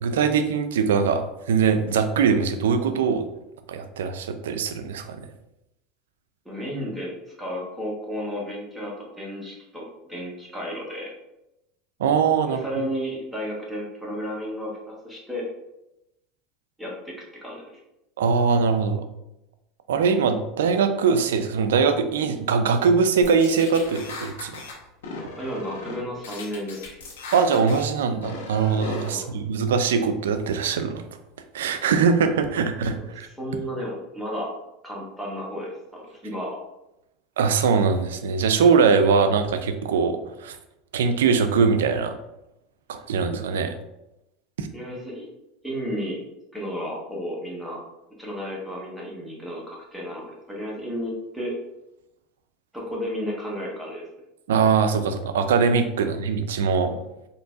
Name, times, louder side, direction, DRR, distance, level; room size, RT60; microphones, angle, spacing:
voice 1, 0.0-3.2 3.7-5.2 12.0-12.6 18.2-19.0 19.9-24.6 27.3-31.0 31.5-33.3 37.4-40.6 40.9-42.1 42.9-43.7 44.6-44.7 54.5-57.0, right 5 dB, 90° right, 9 dB, 0.3 m, -22 dB
voice 2, 6.4-7.1 7.4-11.1 12.5-15.4 16.8-17.1 17.4-17.6 25.4-27.0 29.0-29.4 33.2-34.5 34.8-36.6 44.7-45.3 45.6-46.2 46.5-47.8 48.2-51.5 52.7-54.1, equal, 5° right, -4 dB, 1.1 m, -33 dB
sound 1, 23.2-24.7 25.0-26.0 26.2-27.8 28.2-29.1, left 3 dB, 85° left, 0.9 m, -37 dB
3.8 x 2.7 x 2.4 m, 0.90 s
supercardioid pair, 100°, 0 cm